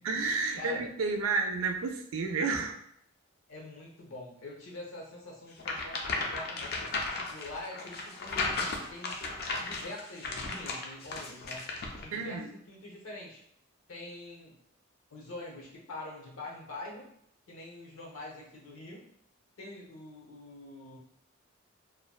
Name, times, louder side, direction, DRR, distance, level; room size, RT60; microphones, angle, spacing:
voice 1, 0.0-2.8 12.1-12.5, right 4 dB, 75° right, 3 dB, 0.4 m, -31 dB
voice 2, 3.5-6.8 7.1-9.1 9.6-11.7 12.0-13.4 13.9-14.6 15.1-17.1 17.5-19.1 19.6-21.0, left 1 dB, 80° left, -1 dB, 0.7 m, -45 dB
sound 1, 5.6-12.1, left 3 dB, 45° left, 0.3 m, -35 dB
2.5 x 2.1 x 2.3 m, 0.70 s
head